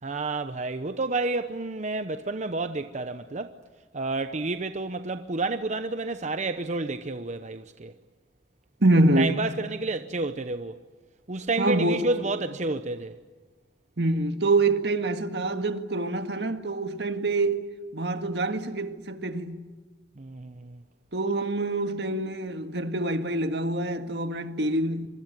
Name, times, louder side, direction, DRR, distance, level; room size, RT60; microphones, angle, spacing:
voice 1, 0.0-3.6 3.9-7.9 9.2-10.8 11.3-13.2 20.2-20.8, right 3 dB, 45° right, 0.8 m, -30 dB
voice 2, 8.8-9.4 11.6-12.0 14.0-17.7 17.9-19.7 21.1-25.1, right 2 dB, 70° right, 1.9 m, -25 dB
26.0 x 24.0 x 9.2 m
head